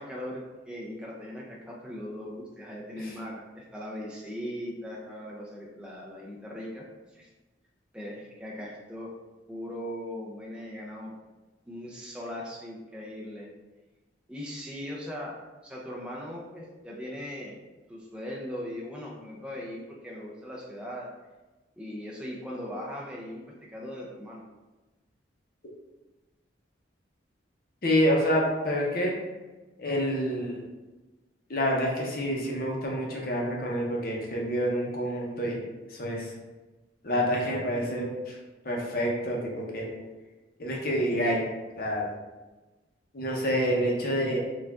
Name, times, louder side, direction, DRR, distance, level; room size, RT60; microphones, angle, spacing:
voice 1, 0.0-7.3 7.9-9.1 9.5-11.1 11.6-13.5 14.3-17.6 17.9-21.1 21.8-24.4, equal, 5° right, -4 dB, 0.6 m, -39 dB
voice 2, 27.8-29.1 29.8-30.6 31.5-36.3 37.0-38.4 38.6-39.9 40.6-41.5 41.8-42.1 43.1-44.4, equal, 50° left, -2 dB, 0.9 m, -28 dB
4.7 x 2.5 x 3.5 m, 1.2 s
head